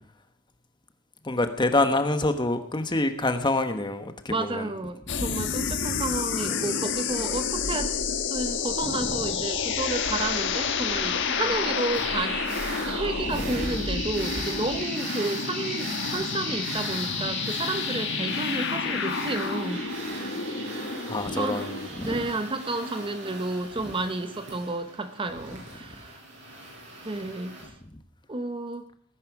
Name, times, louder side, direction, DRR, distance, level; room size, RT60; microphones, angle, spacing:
voice 1, 1.3-4.6 6.6-6.7 13.3-13.4 21.1-22.2, left 2 dB, 20° left, 8 dB, 1.2 m, -26 dB
voice 2, 4.3-8.0 8.3-12.4 12.7-19.8 20.8-21.0 21.3-21.7 22.0-26.2 27.1-27.6 28.3-28.9, right 2 dB, 25° right, 9 dB, 0.8 m, -31 dB
sound 1, 5.1-21.9, left 5 dB, 60° left, 1.2 m, -30 dB
sound 2, 11.9-27.6, right 2 dB, 60° right, 7.7 m, -38 dB
19.0 x 10.0 x 6.0 m, 0.63 s
head